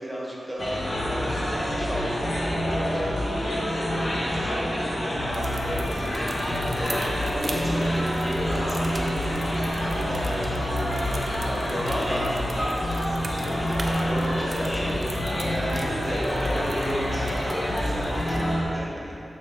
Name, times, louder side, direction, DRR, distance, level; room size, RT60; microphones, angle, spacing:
voice 1, 0.0-9.5 9.8-12.8 13.4-19.2, equal, 5° right, -5 dB, 1.2 m, -34 dB
sound 1, 0.6-18.6, equal, 50° left, 1.0 m, -27 dB
sound 2, 5.3-18.5, right 2 dB, 45° right, 0.5 m, -42 dB
6.2 x 4.8 x 3.5 m, 2.7 s
wide cardioid pair, 125°, 0 cm